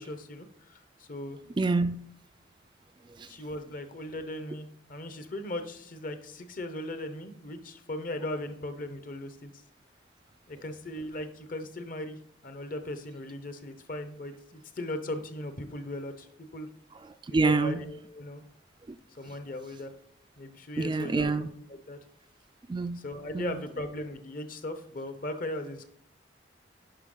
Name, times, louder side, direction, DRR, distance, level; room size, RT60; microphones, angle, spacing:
voice 1, 0.0-1.4 3.3-9.5 10.5-12.2 12.4-16.3 16.5-16.7 17.4-18.4 19.1-19.9 20.4-22.0 23.0-25.9, left 1 dB, 45° left, 0.9 m, -38 dB
voice 2, 1.6-2.0 3.1-3.3 17.0-17.8 18.9-19.0 20.8-21.5 22.7-23.0 23.3-23.6, right 3 dB, 25° right, 0.3 m, -27 dB
10.0 x 5.4 x 3.9 m
head